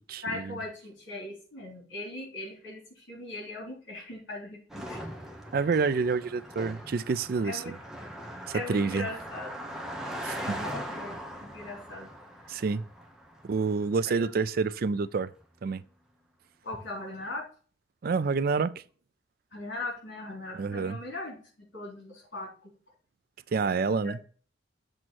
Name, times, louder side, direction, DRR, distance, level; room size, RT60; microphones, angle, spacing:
voice 1, 0.2-5.0 7.4-7.7 8.5-9.5 10.4-11.2 11.5-12.1 14.0-14.3 16.6-17.4 19.5-22.7 23.6-24.1, left 2 dB, 85° left, 3.5 m, -39 dB
Car passing by, 4.7-14.3, equal, ahead, 0.9 m, -41 dB
voice 2, 5.5-7.6 8.7-9.1 10.2-10.6 12.5-12.8 13.4-15.3 15.6-15.8 18.0-18.7 20.5-21.0 23.5-24.2, right 4 dB, 50° right, 0.4 m, -28 dB
7.6 x 3.1 x 6.1 m
head